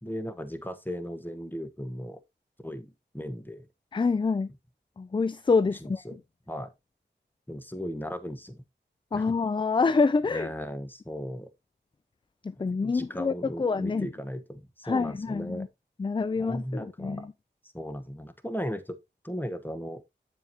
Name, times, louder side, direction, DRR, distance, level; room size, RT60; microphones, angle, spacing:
voice 1, 0.0-2.2 2.6-3.7 5.8-6.2 6.5-6.7 7.5-8.6 9.1-9.3 10.3-11.5 12.8-15.7 16.4-17.3 17.7-19.0 19.2-20.0, equal, 10° left, 1.3 m, -36 dB
voice 2, 3.9-4.5 5.0-6.0 9.1-10.5 12.4-14.1 14.8-15.7 16.0-17.3, left 4 dB, 25° left, 0.3 m, -26 dB
7.9 x 7.1 x 2.9 m
cardioid pair, 40°, 19 cm